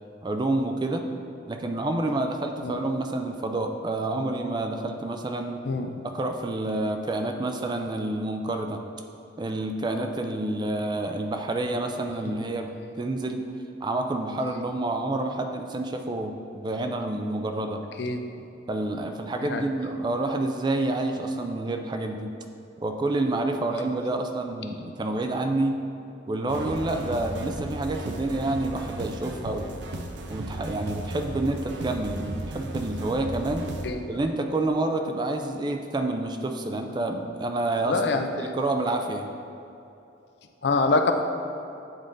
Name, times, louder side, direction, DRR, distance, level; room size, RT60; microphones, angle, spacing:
voice 1, 0.2-1.0 1.5-5.6 6.0-8.8 9.4-12.7 13.0-13.5 13.8-17.8 18.7-22.3 22.8-25.8 26.3-29.7 30.3-33.7 34.1-38.0 38.4-39.3, right 2 dB, 25° right, 4 dB, 0.3 m, -28 dB
sound 1, 26.5-33.9, right 1 dB, 75° right, 0.5 m, -35 dB
voice 2, 37.8-38.5 40.6-41.1, left 3 dB, 65° left, 5 dB, 0.4 m, -25 dB
8.7 x 3.8 x 3.7 m, 2.8 s
head